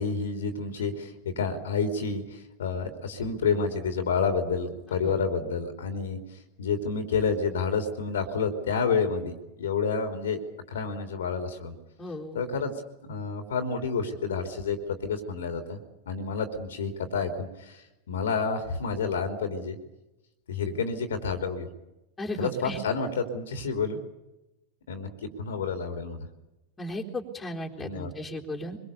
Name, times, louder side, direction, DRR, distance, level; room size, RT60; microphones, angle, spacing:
voice 1, 0.0-6.2 6.6-10.4 10.7-11.7 12.3-12.7 13.0-15.8 16.0-19.8 20.5-21.7 22.4-24.0 24.9-26.2 27.8-28.1, left 5 dB, 65° left, 7 dB, 3.2 m, -29 dB
voice 2, 12.0-12.4 22.2-22.8 26.8-28.8, left 1 dB, 15° left, 0 dB, 3.7 m, -35 dB
24.5 x 23.0 x 6.9 m, 0.96 s
figure-of-eight pair, 90°, 0 cm